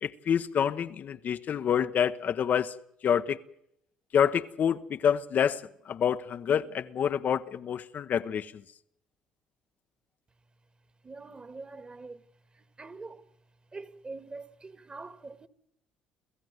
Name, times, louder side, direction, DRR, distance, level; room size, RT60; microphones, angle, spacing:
voice 1, 0.0-2.8 3.0-3.4 4.1-8.5, left 8 dB, 55° left, 0.9 m, -27 dB
voice 2, 11.0-12.3 12.5-13.3 13.7-15.5, right 3 dB, 30° right, 1.9 m, -44 dB
28.0 x 14.5 x 7.9 m
hypercardioid pair, 65°, 3 cm